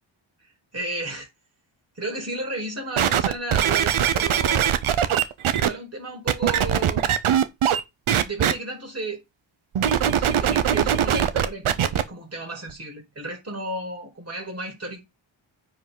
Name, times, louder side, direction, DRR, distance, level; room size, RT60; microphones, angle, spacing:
voice 1, 0.7-1.3 2.0-4.7 5.5-7.1 8.2-9.2 10.2-15.0, right 2 dB, 30° right, 4.9 m, -33 dB
sound 1, 3.0-5.7 6.3-7.8 8.1-8.5 9.7-12.0 12.7-12.8, right 9 dB, 85° right, 1.0 m, -21 dB
9.7 x 5.1 x 4.0 m
wide cardioid pair, 105°, 48 cm